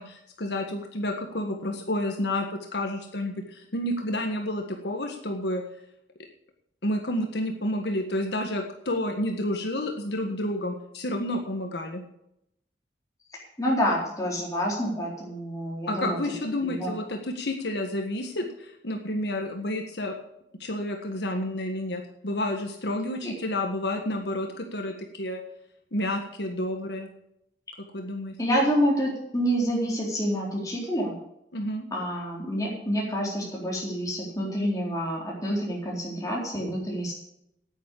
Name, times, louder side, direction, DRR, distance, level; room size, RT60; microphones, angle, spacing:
voice 1, 0.0-5.6 6.8-12.0 15.9-20.1 20.6-25.4 25.9-27.1 27.9-28.3 31.5-31.8, left 1 dB, 70° left, 3 dB, 1.6 m, -30 dB
voice 2, 13.6-16.2 16.6-16.9 23.2-23.3 28.4-31.2 31.9-37.1, equal, 20° left, -4 dB, 4.0 m, -28 dB
9.6 x 9.4 x 8.3 m, 0.78 s
head